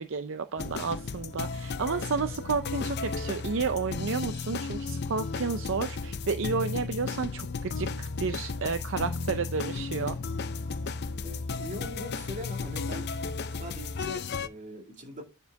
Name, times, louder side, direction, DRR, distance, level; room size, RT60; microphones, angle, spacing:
voice 1, 0.0-10.1, right 5 dB, 60° right, 0.5 m, -31 dB
sound 1, 0.6-14.5, left 4 dB, 50° left, 0.5 m, -34 dB
voice 2, 11.2-13.1 13.5-15.2, equal, 35° right, 2.3 m, -41 dB
9.7 x 4.5 x 4.6 m
head